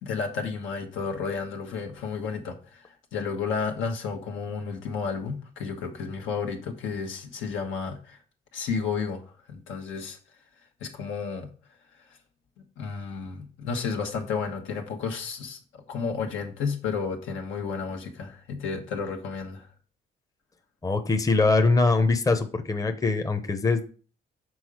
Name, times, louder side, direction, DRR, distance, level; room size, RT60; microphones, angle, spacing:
voice 1, 0.0-8.2 8.5-9.2 9.5-10.2 10.8-11.5 12.8-19.7, left 5 dB, 80° left, 1.2 m, -32 dB
voice 2, 20.8-23.8, left 3 dB, 15° left, 0.7 m, -22 dB
6.2 x 4.0 x 4.8 m
cardioid pair, 90°, 20 cm